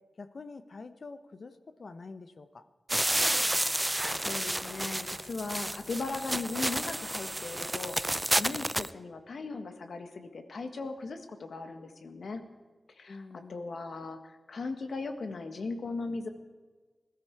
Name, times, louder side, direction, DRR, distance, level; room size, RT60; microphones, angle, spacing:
voice 1, 0.0-2.7 13.1-13.8, left 3 dB, 55° left, 11 dB, 0.9 m, -47 dB
sound 1, 2.9-8.9, right 1 dB, 10° right, 0.4 m, -30 dB
voice 2, 3.8-8.0 8.3-12.4 12.9-16.3, left 3 dB, 70° left, 7 dB, 1.5 m, -38 dB
20.5 x 13.5 x 4.7 m, 1.4 s
wide cardioid pair, 120°, 0 cm